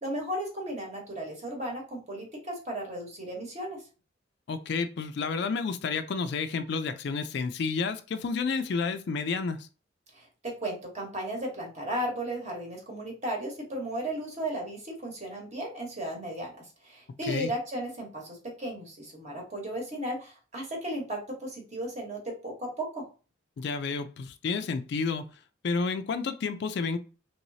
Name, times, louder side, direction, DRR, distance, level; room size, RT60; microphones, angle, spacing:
voice 1, 0.0-3.8 10.1-23.0, right 1 dB, 35° right, 0 dB, 1.1 m, -35 dB
voice 2, 4.5-9.7 17.3-17.5 23.6-25.3 25.6-27.0, left 4 dB, 55° left, 9 dB, 0.3 m, -30 dB
3.1 x 3.0 x 2.7 m, 0.35 s
head